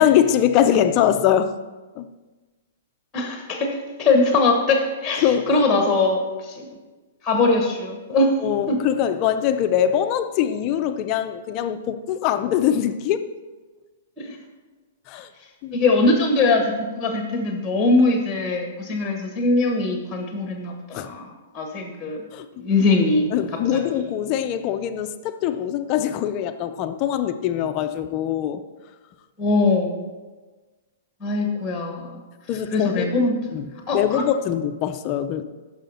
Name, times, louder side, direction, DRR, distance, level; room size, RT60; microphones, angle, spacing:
voice 1, 0.0-1.5 2.0-2.1 5.2-5.6 8.4-13.3 15.1-15.3 15.6-15.8 20.9-21.1 22.3-22.5 23.3-28.6 32.5-33.2 33.5-35.4, left 10 dB, 20° left, 9 dB, 0.4 m, -22 dB
voice 2, 3.1-6.7 7.2-8.3 8.7-8.8 14.2-14.4 15.7-21.3 21.5-22.2 22.6-23.3 29.4-30.0 31.2-32.2 32.7-33.3 33.9-34.2, left 3 dB, 5° left, 3 dB, 1.0 m, -21 dB
15.0 x 6.2 x 4.2 m, 1.3 s
hypercardioid pair, 180°, 0 cm